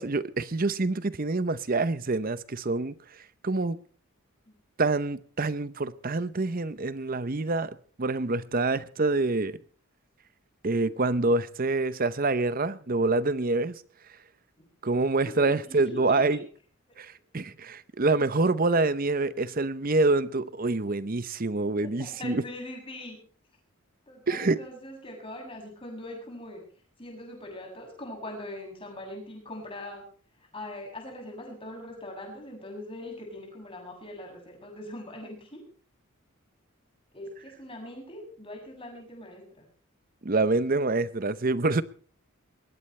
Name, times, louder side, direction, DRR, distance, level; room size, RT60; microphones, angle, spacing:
voice 1, 0.0-3.0 3.4-3.8 4.8-9.6 10.6-13.8 14.8-16.5 17.0-22.4 24.3-24.6 40.2-41.8, right 3 dB, 40° right, 0.8 m, -26 dB
voice 2, 15.2-16.4 21.8-23.2 24.1-26.6 27.0-30.0 30.5-35.6 37.1-39.7, left 1 dB, 25° left, 7.4 m, -41 dB
21.5 x 18.5 x 3.3 m
head